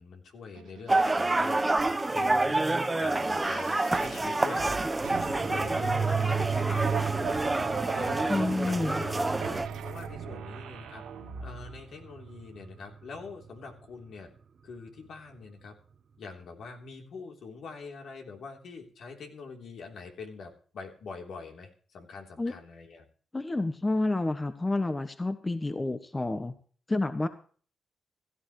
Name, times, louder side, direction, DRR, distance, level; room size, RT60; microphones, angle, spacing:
voice 1, 0.0-2.6 3.0-4.8 5.2-7.5 7.9-9.4 9.8-11.0 11.4-14.3 14.6-15.7 16.2-23.1, left 4 dB, 70° left, 2 dB, 3.6 m, -44 dB
sound 1, 0.5-11.8, right 7 dB, 85° right, 3.0 m, -42 dB
sound 2, 0.9-9.7, right 2 dB, 20° right, 1.0 m, -28 dB
sound 3, 4.9-14.0 14.4-14.5, right 6 dB, 55° right, 1.1 m, -35 dB
voice 2, 8.3-9.0 22.4-22.5 23.3-26.5 26.9-27.3, left 2 dB, 20° left, 10 dB, 1.2 m, -29 dB
16.0 x 14.0 x 3.3 m, 0.43 s
supercardioid pair, 60°, 0 cm